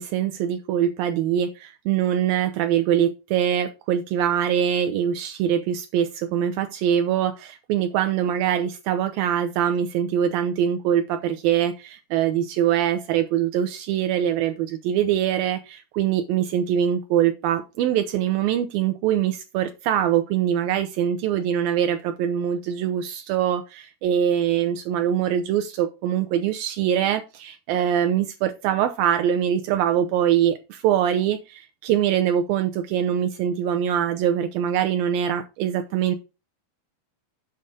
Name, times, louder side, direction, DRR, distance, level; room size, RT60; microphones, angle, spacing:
voice 1, 0.0-36.2, right 10 dB, 80° right, 7 dB, 2.4 m, -23 dB
7.8 x 5.4 x 4.9 m, 0.27 s
omnidirectional pair, 4.4 m